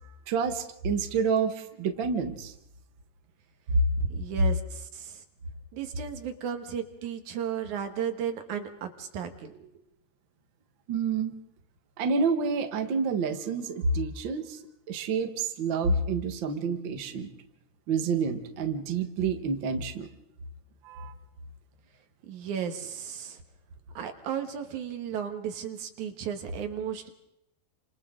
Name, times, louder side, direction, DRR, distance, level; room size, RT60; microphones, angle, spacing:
voice 1, 0.3-2.5 3.7-3.8 10.9-11.4 12.0-14.6 14.9-17.3 17.9-20.1 20.8-21.1, right 4 dB, 85° right, 6 dB, 1.0 m, -28 dB
voice 2, 4.1-5.2 5.7-9.7 22.2-23.4 23.9-27.1, right 8 dB, 60° right, 6 dB, 2.5 m, -35 dB
30.0 x 26.5 x 3.8 m, 0.81 s
omnidirectional pair, 4.6 m